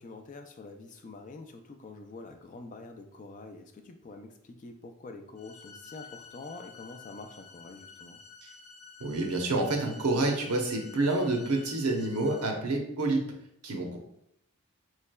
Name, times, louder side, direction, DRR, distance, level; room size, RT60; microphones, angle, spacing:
voice 1, 0.0-8.2, left 3 dB, 35° left, 5 dB, 0.3 m, -46 dB
sound 1, 5.4-12.5, left 5 dB, 85° left, 0.5 m, -51 dB
voice 2, 9.0-13.2 13.6-14.0, right 2 dB, 90° right, 2 dB, 0.8 m, -28 dB
4.6 x 3.1 x 2.2 m, 0.76 s
head